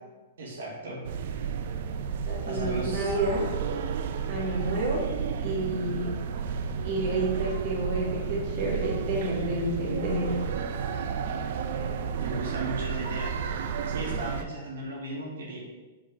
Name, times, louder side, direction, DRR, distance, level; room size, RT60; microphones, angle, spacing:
voice 1, 0.4-1.0 2.5-3.1 12.2-15.6, right 2 dB, 80° right, -3 dB, 2.1 m, -36 dB
sound 1, 1.0-14.4, right 6 dB, 60° right, 0.5 m, -32 dB
voice 2, 2.3-3.5 4.3-5.0 5.4-6.1 6.8-10.3, right 1 dB, 40° right, -5 dB, 2.2 m, -30 dB
5.1 x 4.9 x 5.1 m, 1.2 s
hypercardioid pair, 150°, 0 cm